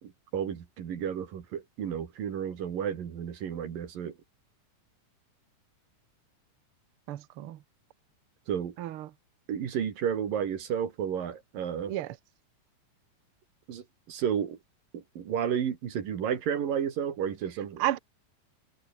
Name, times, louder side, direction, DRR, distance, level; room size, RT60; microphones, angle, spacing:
voice 1, 0.0-4.2 8.5-8.8 9.5-11.9 13.7-14.6 14.9-17.8, right 8 dB, 90° right, 4.3 m, -32 dB
voice 2, 7.1-7.6 8.8-9.1 11.9-12.1 17.8-18.0, right 14 dB, 70° right, 1.3 m, -32 dB
omnidirectional pair, 3.8 m